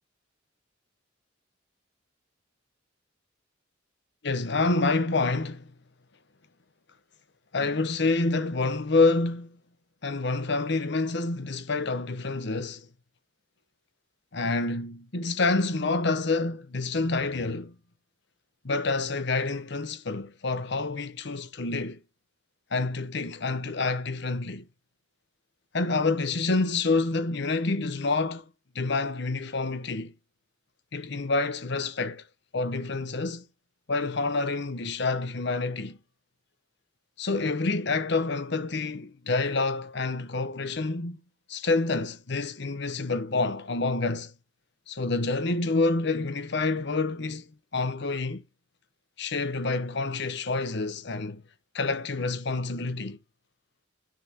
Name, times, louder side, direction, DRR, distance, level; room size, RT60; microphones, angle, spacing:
voice 1, 4.2-5.7 7.5-9.6 10.0-12.9 14.3-17.7 18.6-22.0 22.7-24.7 25.7-28.4 28.7-30.1 30.9-32.2 32.5-33.4 33.9-36.0 37.2-41.2 41.5-44.3 44.9-47.5 47.7-48.4 49.2-51.4 51.7-53.2, left 3 dB, 60° left, 1.0 m, -27 dB
9.8 x 6.7 x 2.9 m
head